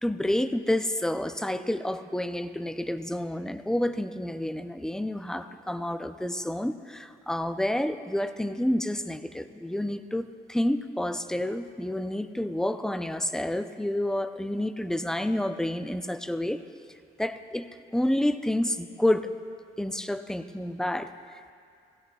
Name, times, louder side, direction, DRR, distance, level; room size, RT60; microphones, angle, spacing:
voice 1, 0.0-16.6 17.2-19.3 19.8-21.5, left 1 dB, 5° left, 10 dB, 0.5 m, -29 dB
17.5 x 16.0 x 2.3 m, 2.3 s
cardioid pair, 90°, 20 cm